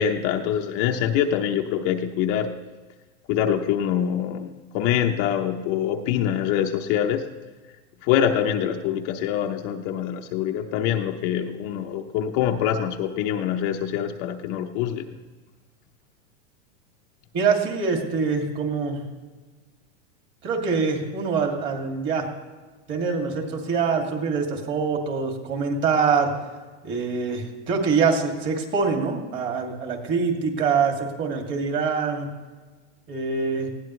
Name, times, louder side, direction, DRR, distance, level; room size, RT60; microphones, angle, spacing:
voice 1, 0.0-2.6 3.3-7.3 8.0-15.2, left 9 dB, 35° left, 4 dB, 0.8 m, -24 dB
voice 2, 17.3-19.0 20.4-22.3 22.9-26.3 26.8-32.3 33.1-33.7, right 5 dB, 30° right, 2 dB, 2.5 m, -24 dB
19.5 x 16.5 x 3.2 m, 1.3 s
supercardioid pair, 150°, 37 cm